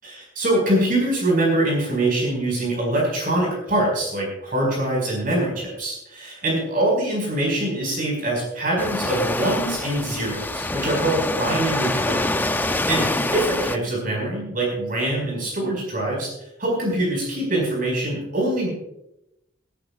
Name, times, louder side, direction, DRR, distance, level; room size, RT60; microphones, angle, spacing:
voice 1, 0.0-12.3 12.7-16.3 16.6-18.7, right 1 dB, 45° right, -2 dB, 5.2 m, -24 dB
Waves surf, 8.8-13.8, left 2 dB, 10° left, 0.5 m, -25 dB
26.0 x 10.5 x 2.4 m, 0.85 s
head